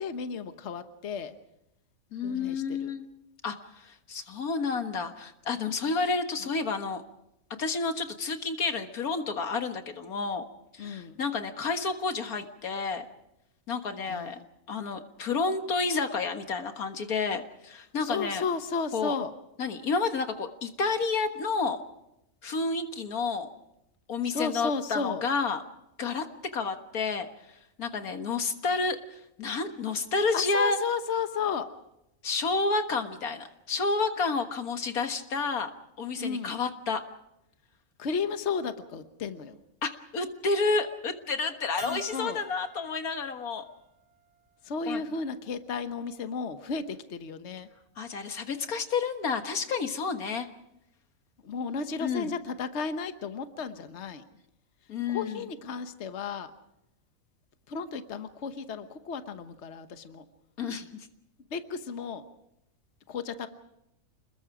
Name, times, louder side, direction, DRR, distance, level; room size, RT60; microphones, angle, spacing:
voice 1, 0.0-1.3 2.2-2.9 10.8-11.2 14.1-14.4 18.0-19.3 24.3-25.2 30.3-31.7 36.2-36.6 38.0-39.6 41.8-42.4 44.6-47.7 51.4-54.2 55.1-56.5 57.7-60.2 61.5-62.2 63.1-63.5, left 5 dB, 55° left, 9 dB, 1.3 m, -33 dB
voice 2, 2.1-3.1 3.4-7.0 7.6-10.4 10.7-13.1 13.7-14.4 14.7-18.4 18.9-19.2 19.6-21.8 22.4-23.5 24.1-25.6 26.0-26.3 26.5-30.8 32.2-35.7 36.0-37.0 39.8-43.6 44.9-45.0 48.0-50.5 52.0-52.3 54.9-55.5 60.6-61.1, left 4 dB, 85° left, 7 dB, 2.0 m, -30 dB
Keyboard (musical), 41.8-44.6, right 3 dB, 15° left, 2.5 m, -48 dB
29.0 x 21.0 x 4.9 m, 0.84 s
omnidirectional pair, 1.5 m